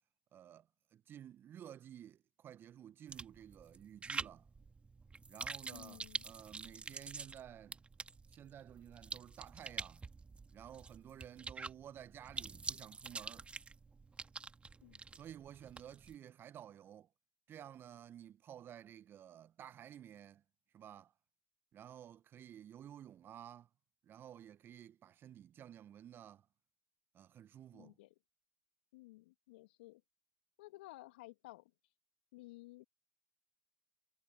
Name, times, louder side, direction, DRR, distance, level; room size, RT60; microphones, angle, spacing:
voice 1, 0.3-4.5 5.3-7.8 8.3-10.0 10.5-13.5 15.1-17.1 17.5-20.4 20.7-21.1 21.7-23.7 24.0-26.5 27.1-28.0, right 10 dB, 40° right, 1.0 m, -53 dB
sound 1, 3.1-16.2, right 4 dB, 20° right, 2.1 m, -47 dB
voice 2, 5.7-6.2 14.8-15.0 27.7-28.1 28.9-30.0 30.6-31.9 32.3-32.8, left 20 dB, 70° left, 2.0 m, -55 dB
hypercardioid pair, 70°, 6 cm